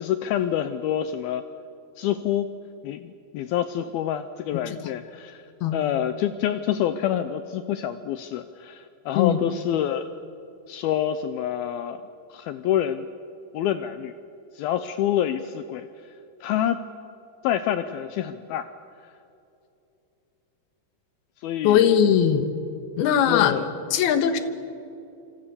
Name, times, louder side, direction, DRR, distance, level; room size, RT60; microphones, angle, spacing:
voice 1, 0.0-1.4 2.0-2.5 2.8-5.4 5.7-10.1 10.7-12.0 12.3-13.1 13.5-14.1 14.5-15.9 16.4-16.8 17.4-18.7 21.4-21.9 23.2-23.7, left 10 dB, 90° left, 11 dB, 2.1 m, -27 dB
voice 2, 21.6-22.4 23.0-23.6 23.9-24.4, left 9 dB, 65° left, 9 dB, 3.0 m, -20 dB
27.0 x 26.5 x 7.0 m, 2.8 s
omnidirectional pair, 5.2 m